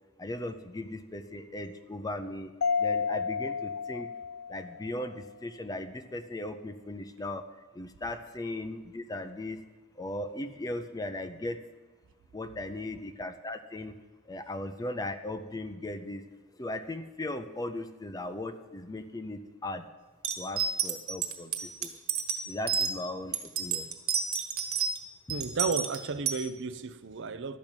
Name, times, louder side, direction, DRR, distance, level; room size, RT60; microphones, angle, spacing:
voice 1, 0.2-2.5 2.8-4.1 4.5-7.4 7.7-9.6 9.9-11.6 12.3-13.9 14.3-16.2 16.6-19.8 20.3-21.9 22.5-23.9, left 1 dB, 15° left, 0.5 m, -37 dB
Mallet percussion, 2.6-5.1, left 6 dB, 75° left, 0.8 m, -31 dB
sound 1, 20.2-22.9 23.3-25.0 25.3-26.4, right 7 dB, 80° right, 1.5 m, -30 dB
voice 2, 25.3-27.6, right 4 dB, 55° right, 0.6 m, -33 dB
12.0 x 6.0 x 8.8 m
head